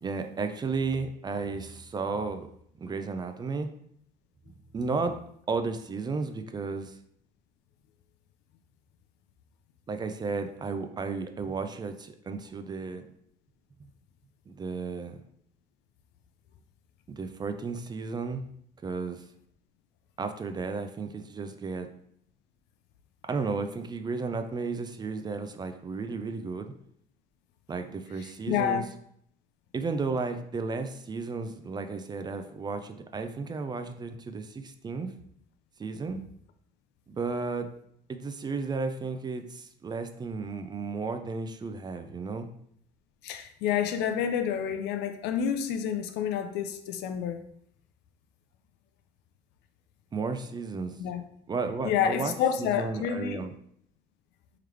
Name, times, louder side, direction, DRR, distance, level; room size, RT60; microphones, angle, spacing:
voice 1, 0.0-2.5 2.8-3.7 4.5-5.2 5.5-7.0 9.9-13.1 14.5-15.2 17.1-18.4 18.8-19.2 20.2-21.9 23.3-26.7 27.7-28.8 29.7-35.1 35.8-36.2 37.1-37.7 38.1-42.5 50.1-51.0 51.5-53.5, right 4 dB, 25° right, 7 dB, 0.4 m, -33 dB
voice 2, 28.5-28.8 43.2-47.4 51.0-51.2 51.8-53.4, left 8 dB, 90° left, 8 dB, 0.5 m, -29 dB
3.8 x 3.0 x 3.2 m, 0.68 s
cardioid pair, 110°, 17 cm